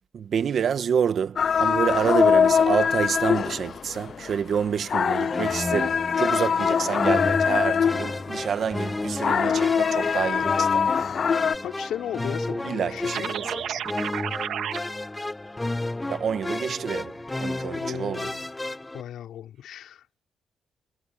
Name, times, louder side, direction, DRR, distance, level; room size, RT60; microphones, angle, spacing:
voice 1, 0.1-11.1 12.6-13.4 16.1-18.3, right 7 dB, 55° right, 1.5 m, -28 dB
sound 1, 1.4-8.5 8.8-11.6, left 7 dB, 50° left, 0.4 m, -23 dB
sound 2, 5.3-19.0, left 2 dB, 15° left, 0.9 m, -32 dB
voice 2, 11.6-13.3 17.7-18.5 18.9-20.0, left 10 dB, 75° left, 4.9 m, -35 dB
sound 3, 13.1-14.8, right 10 dB, 75° right, 1.5 m, -31 dB
cardioid pair, 90°, 0 cm